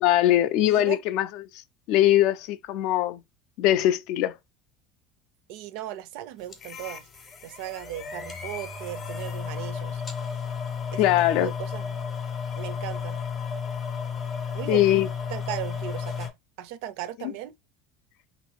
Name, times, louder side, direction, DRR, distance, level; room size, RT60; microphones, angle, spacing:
voice 1, 0.0-1.3 1.9-3.2 3.6-4.4 11.0-11.5 14.7-15.1, left 13 dB, 55° left, 0.3 m, -21 dB
voice 2, 0.7-1.0 5.5-7.1 7.4-10.0 10.9-11.1 11.4-12.0 12.6-13.2 14.5-14.8 15.3-17.5, right 13 dB, 65° right, 0.4 m, -37 dB
sound 1, 6.5-16.3, left 6 dB, 20° left, 0.6 m, -33 dB
3.0 x 2.5 x 2.9 m
cardioid pair, 175°, 0 cm